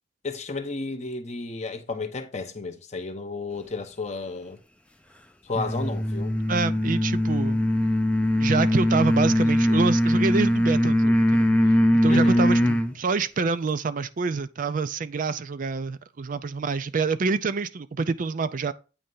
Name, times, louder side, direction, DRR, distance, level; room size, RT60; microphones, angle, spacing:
voice 1, 0.2-4.6 5.4-6.4 12.1-12.5, left 3 dB, 40° left, 0.9 m, -32 dB
sound 1, 5.5-12.9, equal, 5° left, 0.5 m, -21 dB
voice 2, 6.5-7.6 8.4-18.7, right 4 dB, 45° right, 0.4 m, -27 dB
8.7 x 3.3 x 5.5 m
head